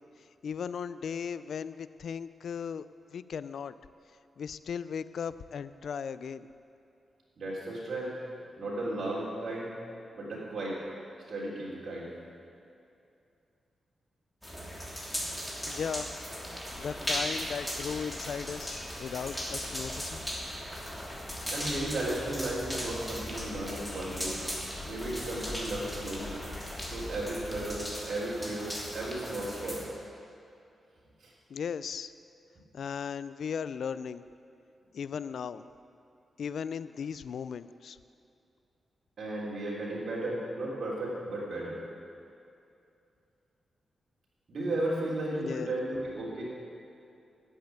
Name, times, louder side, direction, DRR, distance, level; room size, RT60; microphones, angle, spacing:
voice 1, 0.4-2.9 3.1-3.7 4.4-6.5 15.7-16.1 16.8-20.2 31.5-32.1 32.7-34.2 34.9-35.7 36.4-38.0 45.4-45.7, left 7 dB, 75° left, 15 dB, 0.4 m, -37 dB
voice 2, 7.4-8.2 8.6-9.7 10.1-10.8 11.3-12.1 21.5-24.4 24.8-26.4 26.9-29.9 31.2-31.3 39.2-41.8 44.5-46.4, right 1 dB, 60° right, -7 dB, 3.5 m, -34 dB
sound 1, 14.4-29.8, equal, 5° left, 3.1 m, -38 dB
sound 2, 16.7-27.9, left 3 dB, 40° left, 0.9 m, -47 dB
10.5 x 8.5 x 9.1 m, 2.6 s
cardioid pair, 70°, 0 cm